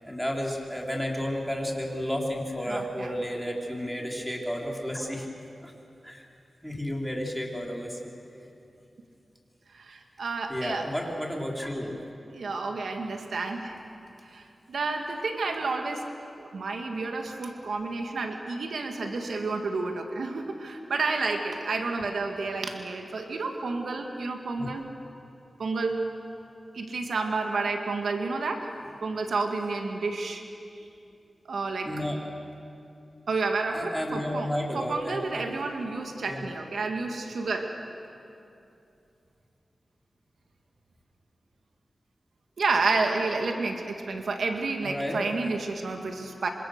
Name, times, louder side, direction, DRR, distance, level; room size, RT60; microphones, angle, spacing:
voice 1, 0.0-5.3 5.6-5.7 6.0-6.3 6.6-8.1 10.5-12.0 24.6-24.7 31.8-32.2 33.7-35.4 36.3-36.4 44.8-45.2, equal, ahead, -1 dB, 4.0 m, -32 dB
voice 2, 2.7-3.1 9.7-10.8 12.3-13.7 14.3-16.0 16.4-24.9 25.6-26.1 26.7-28.7 29.0-30.4 31.5-31.9 33.3-34.5 34.7-37.7 42.6-46.5, right 3 dB, 80° right, 4 dB, 1.9 m, -30 dB
26.5 x 25.5 x 6.6 m, 2.7 s
cardioid pair, 65°, 0 cm